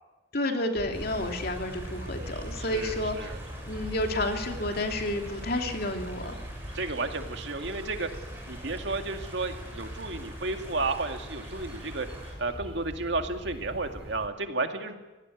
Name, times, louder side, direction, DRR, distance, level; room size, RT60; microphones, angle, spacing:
voice 1, 0.3-3.3 3.6-6.4, left 1 dB, 50° left, 4 dB, 3.0 m, -30 dB
sound 1, 0.8-14.3, equal, 30° right, 3.3 m, -41 dB
sound 2, 0.9-12.3, right 1 dB, 10° right, 7.8 m, -47 dB
voice 2, 2.6-3.4 6.7-8.1 8.5-12.1 12.4-14.9, right 3 dB, 65° right, 5 dB, 2.2 m, -32 dB
25.0 x 18.0 x 9.4 m, 1.1 s
head